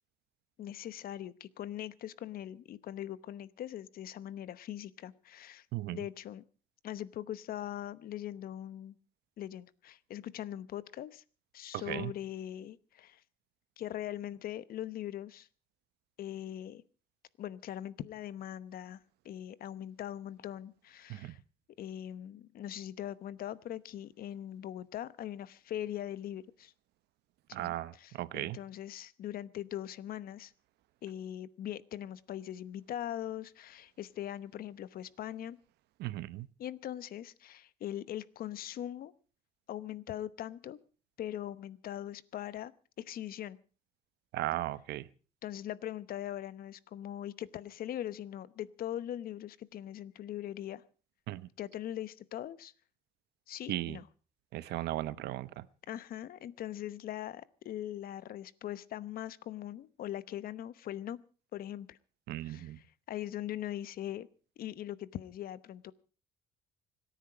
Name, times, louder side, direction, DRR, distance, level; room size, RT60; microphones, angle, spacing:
voice 1, 0.6-5.7 5.9-6.4 6.8-9.0 9.4-11.2 11.5-13.2 13.8-15.5 16.2-16.8 17.4-21.4 21.8-26.7 27.5-30.5 31.0-35.6 36.6-39.1 39.7-40.8 41.2-42.7 43.0-43.6 45.4-50.8 51.6-52.7 53.5-54.1 54.6-54.9 55.9-61.2 61.5-62.0 62.4-64.3 64.6-65.9, left 11 dB, 60° left, 17 dB, 1.0 m, -41 dB
voice 2, 27.5-28.6 36.0-36.5 44.3-45.1 51.3-51.5 53.7-54.0 54.5-55.6 62.3-62.8, right 15 dB, 80° right, 16 dB, 0.9 m, -36 dB
25.5 x 10.0 x 5.0 m, 0.38 s
cardioid pair, 110°, 17 cm